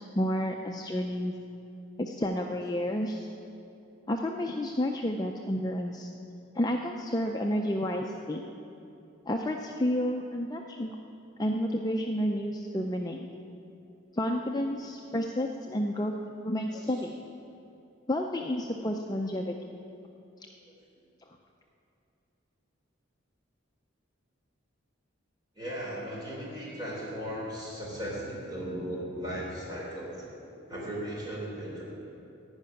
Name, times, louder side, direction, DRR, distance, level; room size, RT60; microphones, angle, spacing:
voice 1, 0.0-1.3 2.0-3.3 4.1-6.1 6.5-8.4 9.3-11.0 11.4-13.3 14.1-16.1 16.4-17.2 18.1-19.8, equal, 20° left, 2 dB, 0.4 m, -30 dB
voice 2, 25.6-30.3 30.7-31.8, equal, 20° right, -5 dB, 3.6 m, -37 dB
15.0 x 5.7 x 9.5 m, 2.7 s
head